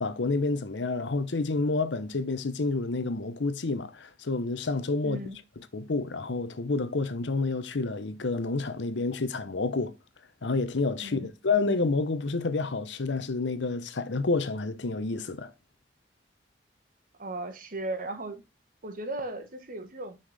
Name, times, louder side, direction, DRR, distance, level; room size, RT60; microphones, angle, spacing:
voice 1, 0.0-5.2 5.7-9.9 10.4-15.5, left 3 dB, 85° left, 0.8 m, -29 dB
voice 2, 5.0-5.4 11.0-11.3 17.2-18.4 18.8-20.2, right 2 dB, 50° right, 1.2 m, -36 dB
6.3 x 5.7 x 3.4 m
head